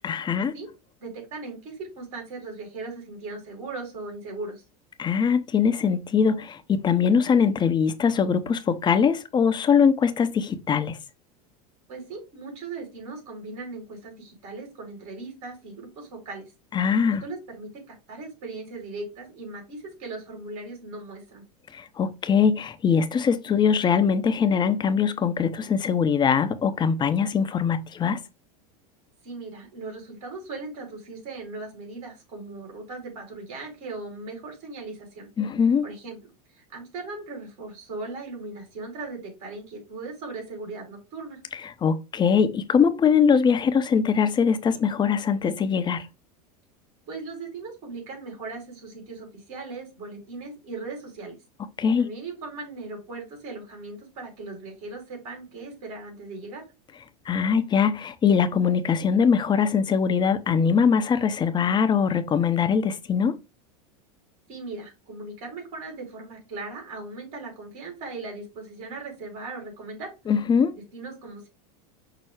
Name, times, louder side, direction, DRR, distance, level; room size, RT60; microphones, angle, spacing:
voice 1, 0.0-0.5 5.0-11.0 16.7-17.2 21.7-28.2 35.4-35.8 41.5-46.1 51.8-52.1 57.3-63.4 70.3-70.7, left 6 dB, 25° left, 0.6 m, -22 dB
voice 2, 1.0-4.6 11.9-16.4 17.2-21.4 29.2-35.3 35.8-36.2 36.5-41.4 47.1-51.4 52.0-56.6 64.5-70.1 70.7-71.5, right 3 dB, 65° right, 2.7 m, -38 dB
5.7 x 2.0 x 4.6 m
supercardioid pair, 110°, 20 cm